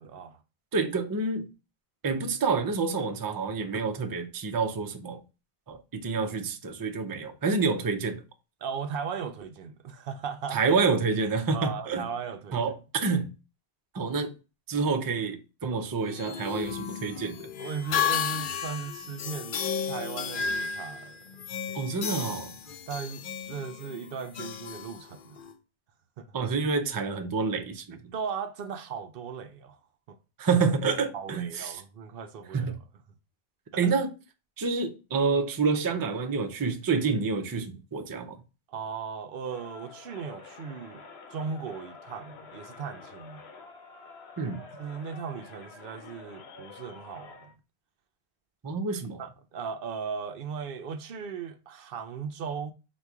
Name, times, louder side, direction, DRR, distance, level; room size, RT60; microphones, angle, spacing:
voice 1, 0.0-0.4 8.6-10.6 11.3-12.6 15.7-15.8 17.6-21.2 22.9-25.4 26.2-26.3 28.1-29.8 30.1-30.2 31.1-32.7 33.7-33.9 38.7-41.0 41.3-43.4 44.6-47.5 49.2-52.7, right 6 dB, 65° right, 0.7 m, -37 dB
voice 2, 0.7-1.5 2.0-5.2 5.7-8.2 10.5-12.1 12.5-13.3 13.9-14.3 14.7-17.5 21.7-22.5 26.3-28.1 30.4-31.8 32.5-32.8 33.8-34.1 34.6-38.4 44.4-44.6 48.6-49.2, right 4 dB, 35° right, 0.4 m, -28 dB
sound 1, 16.0-25.5, left 7 dB, 60° left, 0.6 m, -33 dB
Crowd, 39.4-47.6, left 4 dB, 80° left, 1.0 m, -48 dB
4.1 x 2.3 x 4.6 m
omnidirectional pair, 1.1 m